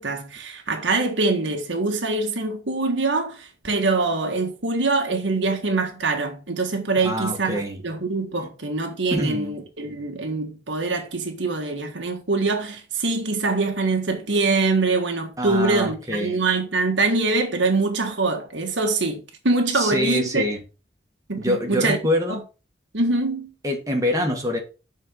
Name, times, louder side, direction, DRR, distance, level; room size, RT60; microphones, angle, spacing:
voice 1, 0.0-20.4 21.3-22.0 22.3-22.4 22.9-23.5, right 3 dB, 75° right, 1.5 m, -24 dB
voice 2, 7.0-7.8 9.1-9.6 15.4-16.4 19.7-20.6 21.4-22.4 23.6-24.6, equal, 20° right, 1.7 m, -25 dB
6.8 x 4.5 x 5.4 m
head